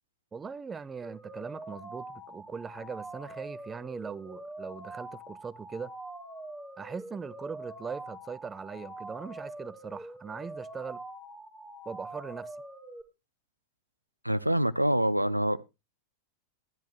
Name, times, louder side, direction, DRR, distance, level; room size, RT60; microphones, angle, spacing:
voice 1, 0.3-5.9 6.8-11.0 11.9-12.6, right 5 dB, 15° right, 0.5 m, -40 dB
sound 1, 1.0-13.0, right 1 dB, 5° left, 1.9 m, -44 dB
voice 2, 14.2-15.6, right 1 dB, 90° right, 0.5 m, -26 dB
15.0 x 10.5 x 3.0 m
figure-of-eight pair, 90°, 0 cm